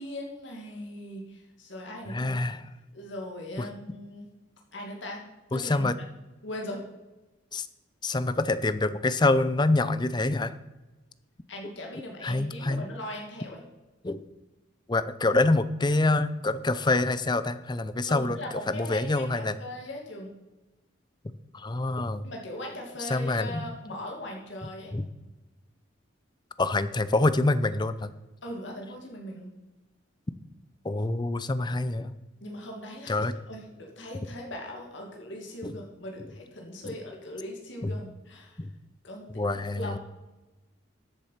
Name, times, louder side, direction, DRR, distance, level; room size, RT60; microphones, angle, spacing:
voice 1, 0.0-2.4 2.9-4.3 4.7-5.9 6.4-6.8 11.5-13.6 18.1-20.3 22.2-24.9 28.4-29.5 32.4-33.2 33.5-38.6 39.0-39.4 39.8-40.0, left 1 dB, 65° left, 0 dB, 2.3 m, -39 dB
voice 2, 2.1-2.7 5.5-5.9 7.5-7.7 8.0-10.5 12.2-12.8 14.0-14.2 14.9-18.4 18.7-19.6 21.5-22.3 23.1-23.7 24.9-25.1 26.6-28.1 30.8-32.1 33.1-33.3 35.6-35.7 37.8-37.9 38.6-38.7 39.4-40.0, left 2 dB, 20° left, 14 dB, 0.5 m, -26 dB
13.5 x 7.6 x 5.8 m, 1.1 s
head